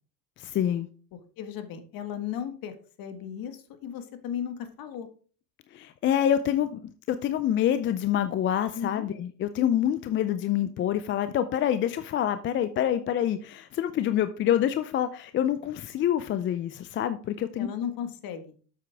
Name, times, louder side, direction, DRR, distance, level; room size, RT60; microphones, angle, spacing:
voice 1, 0.4-0.9 5.7-17.7, left 10 dB, 25° left, 12 dB, 0.4 m, -26 dB
voice 2, 1.4-5.1 8.7-9.1 17.6-18.5, left 8 dB, 45° left, 8 dB, 1.6 m, -36 dB
8.3 x 7.3 x 3.5 m, 0.41 s
supercardioid pair, 100°, 47 cm